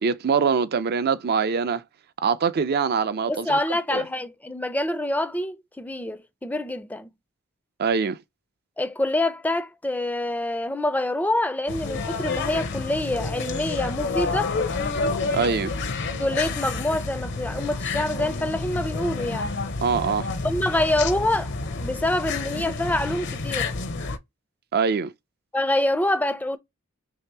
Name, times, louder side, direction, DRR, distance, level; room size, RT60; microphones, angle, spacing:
voice 1, 0.0-1.8 2.2-3.6 3.9-4.0 7.8-8.2 15.3-15.7 19.8-20.3 24.7-25.1, right 5 dB, 50° right, 0.5 m, -23 dB
voice 2, 3.3-7.1 8.8-14.5 16.2-19.5 20.4-23.8 25.5-26.6, left 1 dB, 10° left, 0.4 m, -26 dB
sound 1, 11.7-24.2, left 3 dB, 55° left, 0.7 m, -29 dB
3.3 x 2.7 x 4.6 m
head